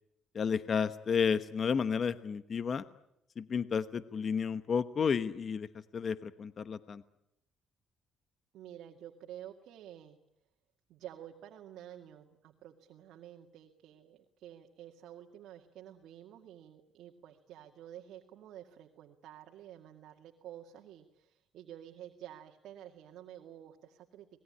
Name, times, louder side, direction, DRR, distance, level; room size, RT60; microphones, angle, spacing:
voice 1, 0.3-2.8 3.4-5.7 5.9-7.0, left 6 dB, 45° left, 12 dB, 1.1 m, -31 dB
voice 2, 8.5-10.2 10.9-24.4, right 11 dB, 75° right, 2 dB, 2.1 m, -50 dB
26.0 x 20.0 x 9.9 m, 0.82 s
cardioid pair, 105°, 0 cm